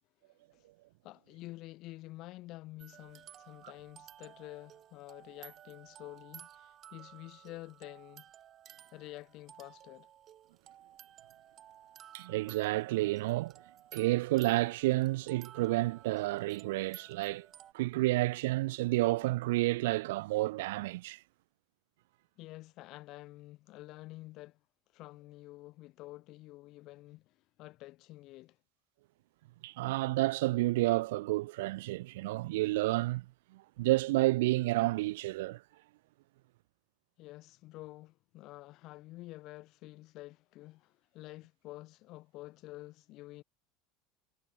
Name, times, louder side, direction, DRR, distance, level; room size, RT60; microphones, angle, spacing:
voice 1, 1.0-8.2 8.9-10.1 22.4-24.6 24.9-28.6 37.2-43.4, left 18 dB, 40° left, 3.2 m, -49 dB
sound 1, 2.8-17.7, right 10 dB, 25° right, 3.6 m, -55 dB
voice 2, 12.1-13.6 13.9-17.5 17.7-21.2 29.6-33.2 33.5-35.6, right 19 dB, 85° right, 0.6 m, -30 dB
cardioid pair, 175°, 0 cm